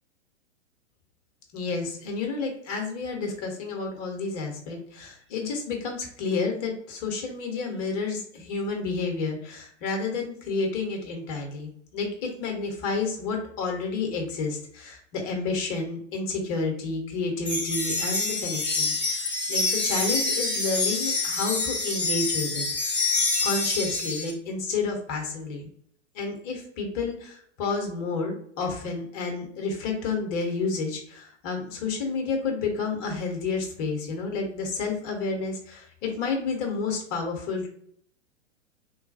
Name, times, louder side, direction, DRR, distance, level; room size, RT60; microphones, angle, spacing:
voice 1, 1.5-23.0 23.4-25.6 26.1-37.7, left 4 dB, 30° left, 2 dB, 0.8 m, -30 dB
sound 1, 17.5-24.3, left 3 dB, 5° left, 0.4 m, -27 dB
3.2 x 2.2 x 2.6 m, 0.66 s
figure-of-eight pair, 110°, 37 cm